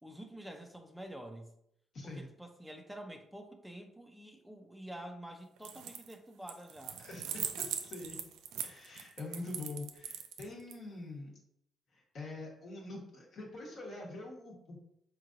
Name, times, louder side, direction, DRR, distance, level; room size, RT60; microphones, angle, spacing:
voice 1, 0.0-1.5 2.0-7.0, right 1 dB, 5° right, 5 dB, 0.4 m, -48 dB
voice 2, 1.9-2.3 7.0-8.2 8.6-11.3 11.9-14.8, left 2 dB, 60° left, -3 dB, 1.0 m, -45 dB
sound 1, 5.6-6.1 6.5-10.7, right 8 dB, 90° right, 0.3 m, -40 dB
3.7 x 3.0 x 2.5 m, 0.74 s
cardioid pair, 90°, 0 cm